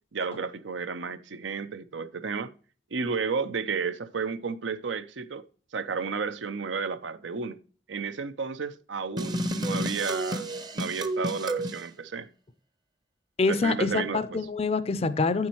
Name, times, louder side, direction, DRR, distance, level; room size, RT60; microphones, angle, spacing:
voice 1, 0.1-2.5 2.9-5.4 5.7-7.6 7.9-10.5 10.7-12.3 13.5-14.2, right 5 dB, 75° right, 0.6 m, -32 dB
sound 1, 9.2-11.8, right 1 dB, 20° right, 0.7 m, -30 dB
voice 2, 13.4-15.5, left 3 dB, 35° left, 0.5 m, -26 dB
9.3 x 7.3 x 3.0 m
head